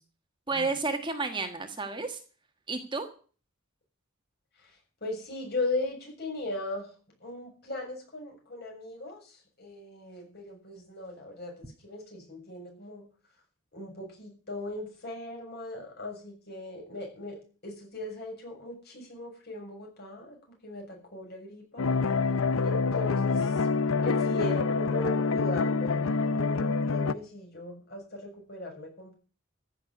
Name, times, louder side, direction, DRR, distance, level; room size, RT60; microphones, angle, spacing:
voice 1, 0.5-2.2 2.7-3.1, right 3 dB, 25° right, 6 dB, 1.5 m, -31 dB
voice 2, 4.6-6.9 7.2-13.0 13.7-21.9 22.6-23.7 24.0-29.1, left 2 dB, 50° left, 1 dB, 7.1 m, -38 dB
sound 1, 21.8-27.1, left 4 dB, 80° left, 0.7 m, -26 dB
14.5 x 6.8 x 9.5 m, 0.40 s
head